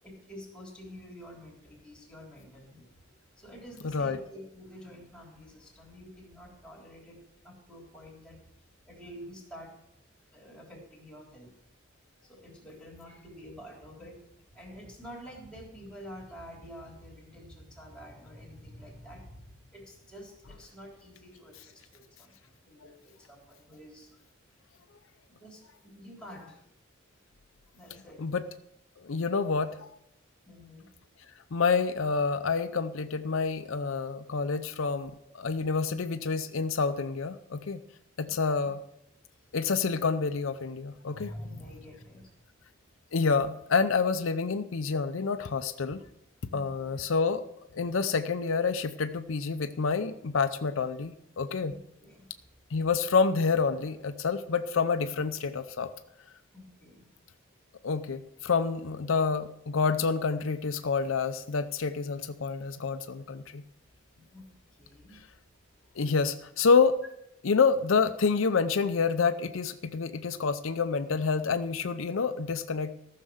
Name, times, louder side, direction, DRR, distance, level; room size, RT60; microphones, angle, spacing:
voice 1, 0.0-7.2 7.4-8.4 8.9-9.7 10.3-11.5 12.2-24.1 25.3-26.6 27.7-28.2 30.5-30.9 35.5-35.7 38.2-38.4 41.0-42.3 46.5-46.9 51.7-52.3 56.5-57.1 64.1-65.2 65.5-65.6, equal, 5° left, -4 dB, 3.6 m, -48 dB
voice 2, 3.8-4.2 28.2-28.4 29.0-29.9 31.5-37.8 38.2-38.8 39.5-41.3 43.1-46.0 46.5-47.4 47.7-51.7 52.7-55.9 57.8-63.6 66.0-67.0 67.4-72.9, left 5 dB, 75° left, 10 dB, 0.6 m, -28 dB
14.5 x 6.6 x 6.4 m, 0.78 s
head